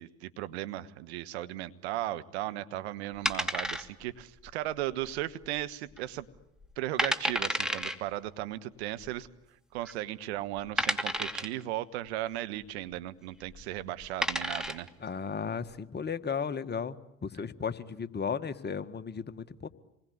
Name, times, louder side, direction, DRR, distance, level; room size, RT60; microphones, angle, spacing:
voice 1, 0.0-6.3 6.8-9.3 9.7-14.9, right 14 dB, 80° right, 12 dB, 1.3 m, -36 dB
sound 1, 3.3-4.2 4.5-4.6 5.2-5.6 6.0-6.1 6.6-6.7 7.0-8.0 9.0-9.1 9.8-9.9 10.8-11.6 13.4-13.6 14.0-14.9, equal, ahead, 2.7 m, -30 dB
voice 2, 15.0-17.0 17.2-19.7, left 6 dB, 30° left, 10 dB, 1.7 m, -35 dB
27.5 x 21.0 x 9.6 m, 0.88 s
hypercardioid pair, 65°, 32 cm